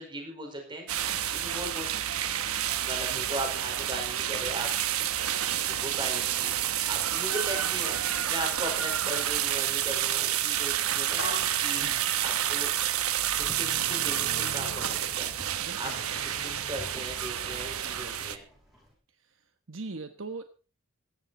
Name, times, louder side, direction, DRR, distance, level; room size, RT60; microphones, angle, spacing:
voice 1, 0.0-1.9 2.7-4.7 5.6-6.6 6.8-7.9 8.3-11.9 12.2-12.7 13.4-15.3 15.8-15.9 16.2-18.4, right 1 dB, 20° right, 3 dB, 5.0 m, -38 dB
sound 1, 0.9-18.4, right 11 dB, 80° right, 1.1 m, -29 dB
sound 2, 6.4-18.9, equal, ahead, 8.0 m, -55 dB
sound 3, 11.2-12.5 13.1-15.4 15.9-17.7, left 2 dB, 65° left, 4.9 m, -42 dB
voice 2, 15.6-16.1 19.1-20.4, right 3 dB, 60° right, 8 dB, 1.1 m, -41 dB
16.5 x 13.5 x 4.3 m, 0.36 s
head